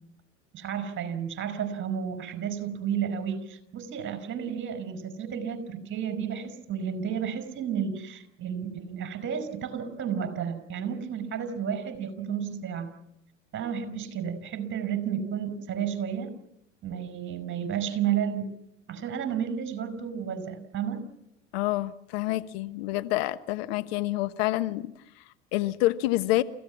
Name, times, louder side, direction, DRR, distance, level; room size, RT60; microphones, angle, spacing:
voice 1, 0.5-12.9 13.5-16.3 16.8-18.5 18.9-21.0, right 8 dB, 35° right, 11 dB, 5.3 m, -32 dB
voice 2, 21.5-24.9 25.5-26.4, left 17 dB, 60° left, 12 dB, 1.2 m, -27 dB
29.0 x 16.0 x 7.4 m, 0.81 s
hypercardioid pair, 95°, 35 cm